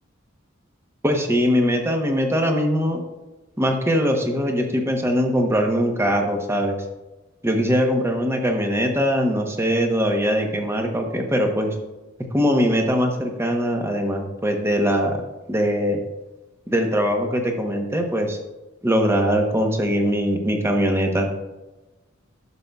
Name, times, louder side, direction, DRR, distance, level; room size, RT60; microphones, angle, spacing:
voice 1, 1.0-3.0 3.6-6.8 7.4-11.7 12.3-15.2 15.5-16.0 16.7-18.4 18.8-21.3, equal, 15° right, 3 dB, 0.9 m, -21 dB
11.0 x 6.6 x 2.3 m, 1.1 s
head